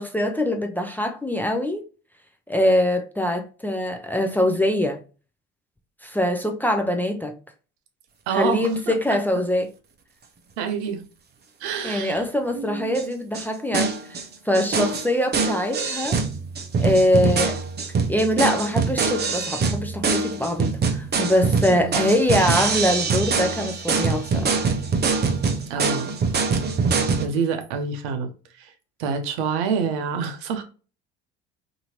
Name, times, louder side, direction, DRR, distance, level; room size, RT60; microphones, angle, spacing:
voice 1, 0.0-1.8 2.5-5.0 6.0-7.3 8.3-9.7 11.8-14.2 14.4-16.2 16.8-17.6 18.1-24.5, left 1 dB, 5° left, 0.5 m, -23 dB
voice 2, 8.3-9.0 10.6-11.0 11.6-12.2 12.5-13.0 21.7-22.0 25.7-26.4 26.9-28.3 28.6-28.7 29.0-30.6, right 6 dB, 75° right, 0.7 m, -27 dB
sound 1, 13.0-13.1 13.3-13.5 13.7-14.3 14.5-27.3, right 4 dB, 30° right, 0.7 m, -24 dB
2.8 x 2.7 x 2.8 m
hypercardioid pair, 65°, 33 cm